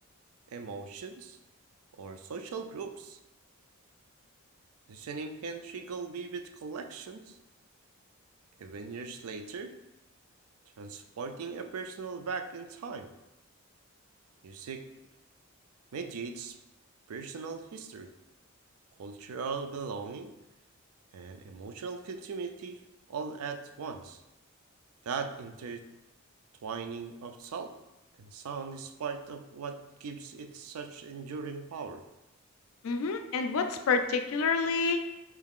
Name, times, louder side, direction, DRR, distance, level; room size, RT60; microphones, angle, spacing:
voice 1, 0.5-1.4 1.9-3.2 4.9-7.4 8.6-9.8 10.8-13.1 14.4-14.9 15.9-16.6 17.1-18.1 19.0-20.3 21.1-24.2 25.0-25.8 26.6-27.8 28.2-32.0, right 5 dB, 90° right, 7 dB, 0.4 m, -39 dB
voice 2, 32.8-35.0, left 4 dB, 75° left, 7 dB, 0.4 m, -28 dB
4.6 x 2.4 x 3.5 m, 0.94 s
head